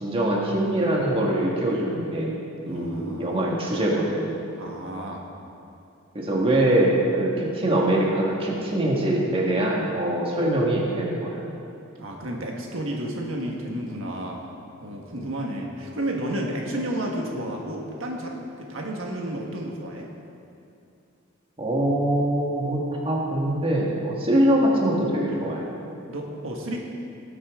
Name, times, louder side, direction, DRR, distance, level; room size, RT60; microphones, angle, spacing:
voice 1, 0.0-2.3 2.6-4.4 6.1-11.4 21.6-25.7, right 1 dB, 25° right, -3 dB, 1.6 m, -23 dB
voice 2, 2.7-3.6 4.6-5.2 12.0-14.5 14.8-20.1 26.1-26.8, right 1 dB, 80° right, 0 dB, 1.4 m, -32 dB
18.5 x 8.4 x 3.7 m, 2.7 s
head